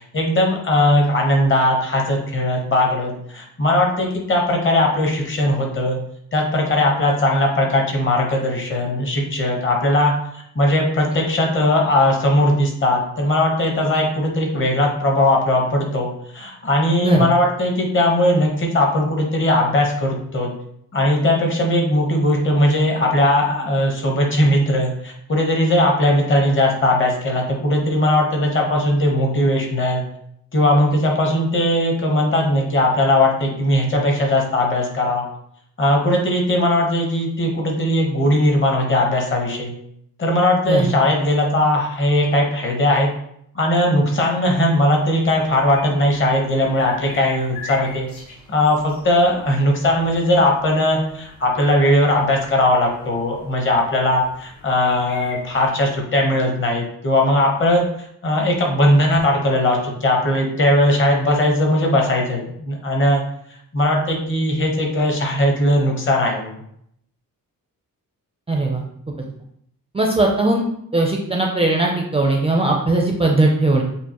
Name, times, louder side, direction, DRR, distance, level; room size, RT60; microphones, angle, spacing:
voice 1, 0.1-6.0 6.3-10.1 10.5-20.5 20.9-30.0 30.5-35.2 35.8-39.7 40.2-43.1 43.5-48.1 48.5-63.2 63.7-66.6, left 1 dB, 35° left, 0 dB, 1.0 m, -19 dB
sound 1, 45.2-55.7, left 3 dB, 75° left, 1.5 m, -40 dB
voice 2, 68.5-68.8 69.9-70.6 70.9-73.8, right 2 dB, 20° right, 0 dB, 0.4 m, -19 dB
6.8 x 2.5 x 2.9 m, 0.71 s
wide cardioid pair, 170°, 34 cm